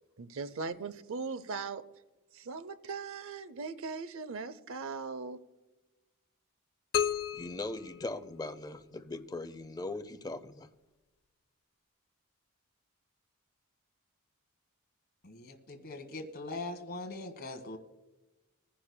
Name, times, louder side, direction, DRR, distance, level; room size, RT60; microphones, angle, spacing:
voice 1, 0.2-1.9 2.3-5.4, right 4 dB, 65° right, 0.6 m, -39 dB
sound 1, 6.9-8.9, left 9 dB, 70° left, 0.5 m, -34 dB
voice 2, 7.3-10.7, left 2 dB, 20° left, 0.6 m, -40 dB
voice 3, 15.2-17.8, left 2 dB, 45° left, 1.4 m, -41 dB
22.0 x 10.0 x 2.2 m
head